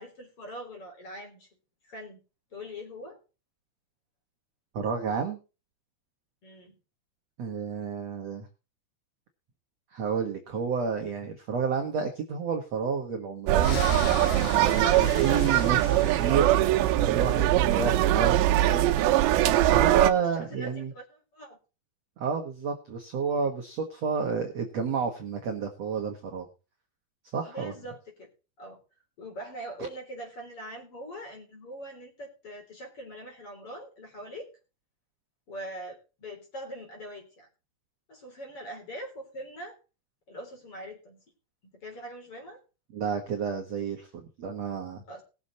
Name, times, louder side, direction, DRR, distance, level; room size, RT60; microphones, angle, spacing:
voice 1, 0.0-1.5 1.8-2.2 2.5-3.2 6.4-6.8 20.1-21.6 27.5-28.3 28.6-28.8 29.2-34.5 35.5-37.5 38.1-39.8 40.3-41.2 41.6-42.6 45.1-45.2, equal, 35° left, 2 dB, 4.2 m, -42 dB
voice 2, 4.7-5.4 7.4-8.5 9.9-13.8 14.3-18.9 19.5-20.9 22.2-26.5 27.3-27.7 42.9-45.0, right 6 dB, 60° right, 3 dB, 1.8 m, -30 dB
sound 1, 13.5-17.5, left 10 dB, 70° left, 2.3 m, -39 dB
sound 2, 13.5-20.1, right 14 dB, 80° right, 3.0 m, -22 dB
20.0 x 7.2 x 4.1 m, 0.32 s
omnidirectional pair, 5.1 m